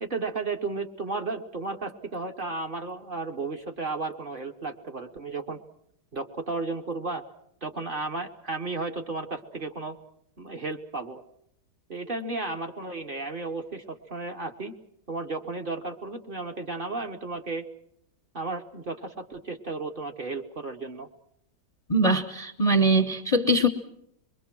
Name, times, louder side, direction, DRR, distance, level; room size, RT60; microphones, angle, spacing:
voice 1, 0.0-5.6 6.1-7.2 7.6-10.0 10.4-11.2 11.9-14.7 15.1-17.7 18.3-21.1, right 3 dB, 35° right, 5 dB, 1.1 m, -33 dB
voice 2, 21.9-23.7, right 1 dB, 30° left, 5 dB, 0.8 m, -22 dB
26.0 x 22.0 x 6.1 m, 0.76 s
omnidirectional pair, 1.9 m